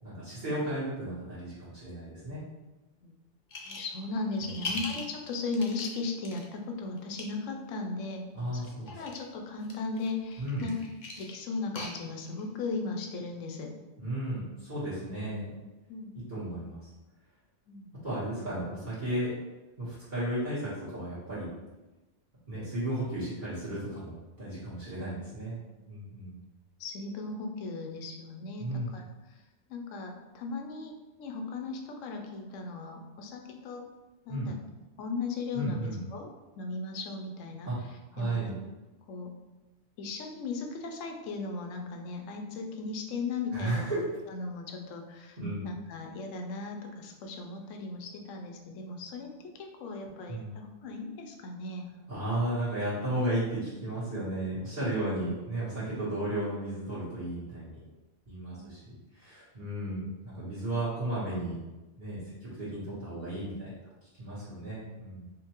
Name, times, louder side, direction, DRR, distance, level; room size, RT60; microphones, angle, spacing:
voice 1, 0.0-2.4 4.7-4.8 8.3-9.0 10.4-10.7 14.0-15.5 16.3-16.8 18.0-19.3 19.8-21.5 22.5-24.1 24.4-25.6 25.9-26.4 28.6-28.9 34.3-34.5 35.5-36.0 37.6-37.8 38.1-38.5 43.5-44.0 45.4-45.7 50.3-50.5 52.1-57.8 58.3-58.8 59.1-61.6 62.0-63.7 64.2-65.3, right 1 dB, 40° right, -11 dB, 1.3 m, -34 dB
sound 1, 3.5-4.0 4.3-6.4 7.0-7.2 8.5-9.2 9.6-12.4, left 3 dB, 45° left, 0.6 m, -40 dB
voice 2, 3.7-8.2 8.5-10.8 11.2-13.7 15.9-16.2 17.7-17.9 26.8-29.4 29.7-33.8 34.3-34.6 35.0-36.3 36.6-37.7 38.2-38.5 39.1-39.3 40.0-43.9 44.3-45.4 45.6-51.9 58.5-58.7, left 3 dB, 90° left, 3 dB, 0.9 m, -37 dB
5.1 x 2.2 x 2.9 m, 1.1 s
omnidirectional pair, 1.3 m